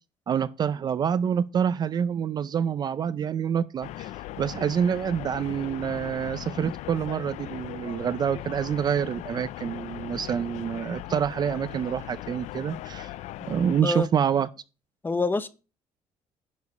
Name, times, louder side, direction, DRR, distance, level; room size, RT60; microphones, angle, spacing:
voice 1, 0.3-4.1 4.4-13.1 13.5-14.5, right 8 dB, 35° right, 0.4 m, -27 dB
sound 1, 3.8-13.8, left 15 dB, 75° left, 0.4 m, -39 dB
voice 2, 15.0-15.5, left 3 dB, 15° left, 0.6 m, -25 dB
10.5 x 4.7 x 5.3 m
cardioid pair, 150°, 12 cm